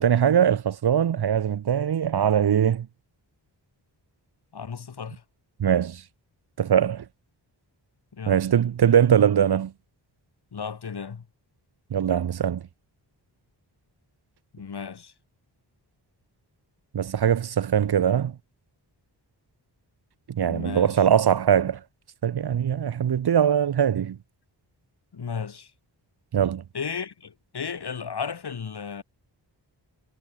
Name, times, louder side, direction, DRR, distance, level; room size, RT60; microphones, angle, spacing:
voice 1, 0.0-2.9 5.6-6.0 6.6-7.0 8.3-9.7 11.9-12.6 16.9-18.3 20.3-21.8 22.2-24.2 26.3-26.6, right 8 dB, 60° right, 0.8 m, -21 dB
voice 2, 4.5-5.2 8.1-8.4 10.5-11.3 14.5-15.1 20.4-21.0 25.1-25.7 26.7-29.0, left 6 dB, 60° left, 3.2 m, -34 dB
wide cardioid pair, 150°, 45 cm